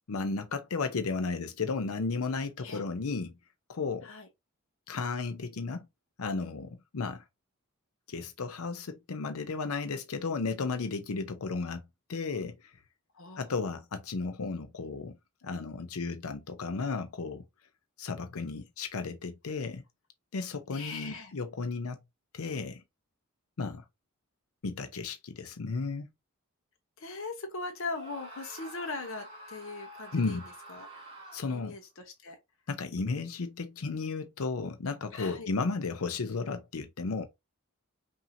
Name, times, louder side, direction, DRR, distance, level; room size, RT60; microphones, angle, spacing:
voice 1, 0.1-3.3 3.7-4.1 4.9-5.9 6.2-7.2 8.1-11.8 12.1-12.7 13.4-15.2 15.4-17.4 18.0-19.8 20.3-22.0 22.3-22.8 23.6-23.8 24.6-26.1 30.1-30.4 31.3-31.8 32.7-37.3, left 4 dB, 85° left, 0.6 m, -34 dB
voice 2, 13.1-13.5 20.7-21.3 27.0-30.4 30.7-30.9 31.5-32.4 35.1-35.5, left 3 dB, 65° left, 0.9 m, -40 dB
Screaming, 27.9-31.7, right 1 dB, 25° right, 1.9 m, -48 dB
5.6 x 2.8 x 2.7 m
head